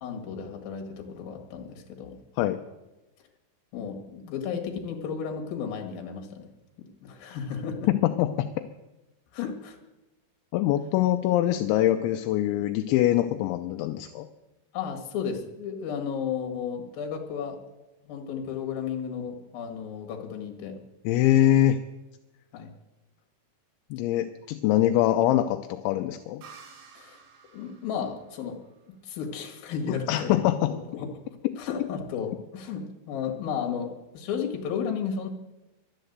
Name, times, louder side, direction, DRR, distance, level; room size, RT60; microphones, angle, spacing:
voice 1, 0.0-2.2 3.7-6.5 6.8-7.9 9.3-9.8 14.7-17.6 18.0-20.8 22.5-22.7 27.0-27.2 27.5-28.6 28.9-30.4 30.9-31.2 31.6-35.3, left 7 dB, 60° left, 2 dB, 3.2 m, -33 dB
voice 2, 7.9-8.5 10.5-14.3 21.1-21.8 23.9-26.4 29.9-30.7, left 13 dB, 85° left, 7 dB, 2.9 m, -23 dB
sound 1, 26.4-29.9, right 6 dB, 70° right, 3.8 m, -53 dB
11.5 x 11.5 x 8.0 m, 1.0 s
omnidirectional pair, 5.4 m